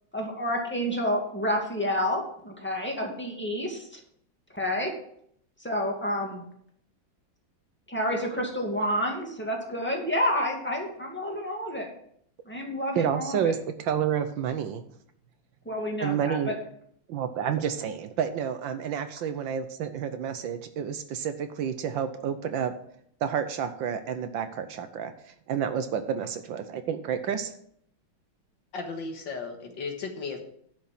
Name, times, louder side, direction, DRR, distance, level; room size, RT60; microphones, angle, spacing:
voice 1, 0.1-4.0 4.5-4.9 5.6-6.4 7.9-11.9 12.5-13.5 15.7-16.4, equal, 5° left, 0 dB, 2.1 m, -29 dB
voice 2, 12.9-14.8 16.0-16.6 17.1-22.7 23.2-25.1 25.5-27.5, right 8 dB, 70° right, 9 dB, 1.4 m, -29 dB
voice 3, 28.7-30.4, left 4 dB, 65° left, 4 dB, 2.1 m, -35 dB
10.5 x 6.5 x 5.9 m, 0.67 s
omnidirectional pair, 2.3 m